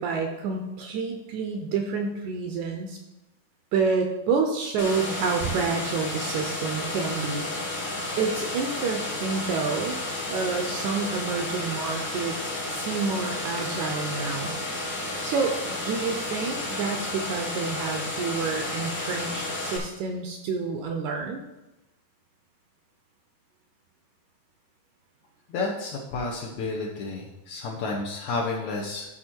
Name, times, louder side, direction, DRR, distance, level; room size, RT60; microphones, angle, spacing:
voice 1, 0.0-3.0 3.7-7.5 8.2-10.0 10.3-12.4 12.7-14.6 15.2-15.6 15.8-21.4, right 5 dB, 75° right, 4 dB, 1.9 m, -28 dB
sound 1, 4.8-19.8, left 2 dB, 50° left, 0.9 m, -32 dB
voice 2, 25.5-29.1, left 3 dB, 70° left, -2 dB, 2.0 m, -31 dB
12.0 x 4.2 x 4.5 m, 0.96 s
omnidirectional pair, 3.9 m